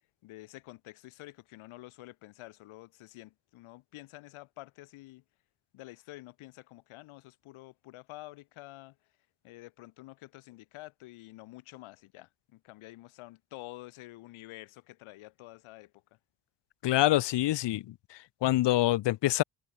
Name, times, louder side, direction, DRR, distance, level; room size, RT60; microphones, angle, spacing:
voice 1, 0.2-5.2 5.7-9.0 9.4-16.0, left 19 dB, 80° left, 2.1 m, -49 dB
voice 2, 16.8-19.4, left 15 dB, 60° left, 0.8 m, -26 dB
supercardioid pair, 65°, 49 cm